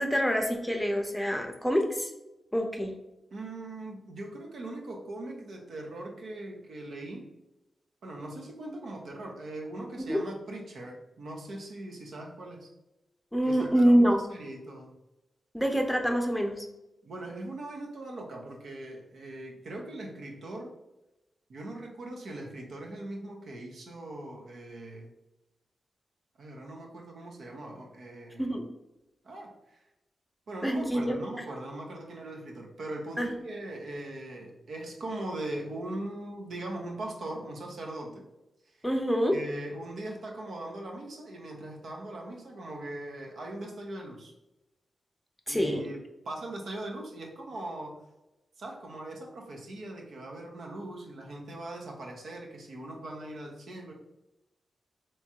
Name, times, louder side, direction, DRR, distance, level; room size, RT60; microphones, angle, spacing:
voice 1, 0.0-2.1 2.5-2.9 10.1-10.2 13.3-14.2 15.5-16.6 28.4-28.6 30.6-31.2 33.2-33.3 38.8-39.3 45.5-45.8, equal, 5° left, 3 dB, 0.7 m, -26 dB
voice 2, 3.3-7.3 8.0-12.7 13.4-14.9 17.0-20.7 21.5-25.1 26.4-28.6 29.2-29.8 30.5-38.2 38.6-38.8 39.3-44.3 45.5-46.0 46.2-48.0 48.6-53.9, right 1 dB, 75° right, 1 dB, 0.7 m, -40 dB
3.4 x 3.0 x 2.9 m, 0.97 s
cardioid pair, 55°, 0 cm